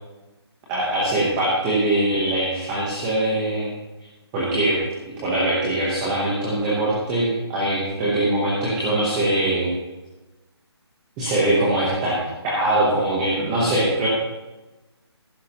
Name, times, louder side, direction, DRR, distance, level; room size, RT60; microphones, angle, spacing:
voice 1, 0.7-3.7 4.3-4.8 5.2-9.7 11.2-14.1, right 1 dB, 5° right, -6 dB, 0.9 m, -22 dB
14.5 x 12.0 x 2.9 m, 1.1 s
hypercardioid pair, 175°, 14 cm